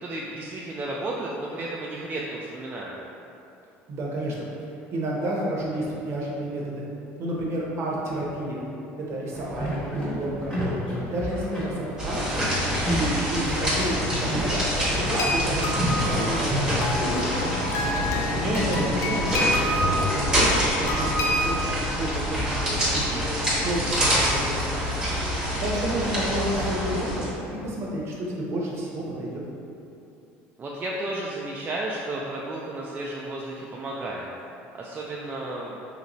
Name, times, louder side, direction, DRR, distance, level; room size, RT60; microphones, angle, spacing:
voice 1, 0.0-2.9 17.8-18.2 25.4-25.8 30.6-34.3 34.7-35.7, right 2 dB, 30° right, -4 dB, 0.3 m, -33 dB
voice 2, 3.9-4.5 4.9-6.9 7.2-8.6 9.0-10.6 11.0-12.4 12.8-15.0 15.2-17.2 18.3-23.3 23.6-24.9 25.6-27.4 27.6-29.4, right 1 dB, 50° right, -3 dB, 0.7 m, -30 dB
sound 1, 9.3-20.4, equal, 15° left, 1.1 m, -30 dB
sound 2, 12.0-27.3, equal, 15° right, 0.9 m, -26 dB
sound 3, 15.2-21.7, left 1 dB, 55° left, 0.4 m, -29 dB
3.2 x 2.6 x 3.0 m, 2.8 s
supercardioid pair, 95°, 6 cm